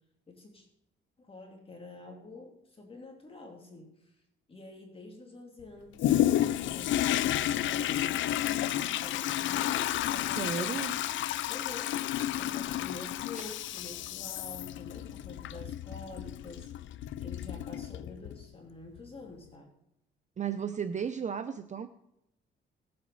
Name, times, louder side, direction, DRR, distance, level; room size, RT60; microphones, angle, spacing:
voice 1, 0.3-0.7 1.2-4.2 4.5-8.0 8.4-9.7 10.1-10.8 11.5-19.7, left 3 dB, 30° left, 1 dB, 2.5 m, -48 dB
Toilet flush, 6.0-18.4 19.0-19.1, left 12 dB, 75° left, 0.5 m, -31 dB
voice 2, 10.4-10.9 20.4-21.9, right 7 dB, 35° right, 10 dB, 0.7 m, -34 dB
18.0 x 7.8 x 4.1 m, 0.82 s
cardioid pair, 90°, 20 cm